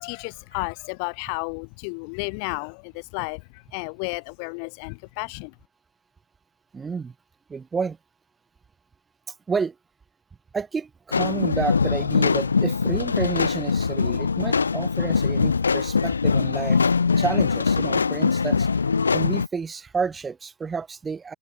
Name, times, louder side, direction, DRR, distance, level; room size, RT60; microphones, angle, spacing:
voice 1, 0.0-5.5, left 38 dB, 45° left, 1.6 m, -32 dB
voice 2, 6.7-7.1 7.5-8.0 9.5-9.7 10.5-16.8 17.2-18.7 19.1-21.3, right 5 dB, 15° right, 1.2 m, -30 dB
sound 1, 11.1-19.5, left 5 dB, 75° left, 0.7 m, -22 dB
open air
figure-of-eight pair, 90°, 0 cm